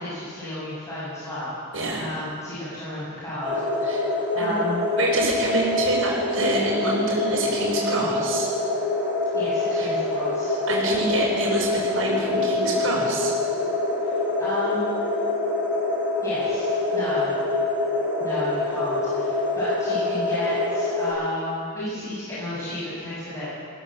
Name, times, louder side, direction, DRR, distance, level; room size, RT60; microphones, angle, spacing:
voice 1, 0.0-1.5 1.9-4.0 4.3-4.8 9.3-10.6 14.0-14.9 16.2-17.3 18.2-23.5, left 1 dB, 15° left, -10 dB, 7.9 m, -32 dB
voice 2, 1.7-2.0 3.8-4.0 4.4-4.5 5.0-8.5 9.7-9.9 10.7-13.3, right 2 dB, 75° right, -7 dB, 6.1 m, -26 dB
sound 1, 3.4-21.1, left 2 dB, 10° right, 8.0 m, -25 dB
21.0 x 16.0 x 7.8 m, 2.1 s
head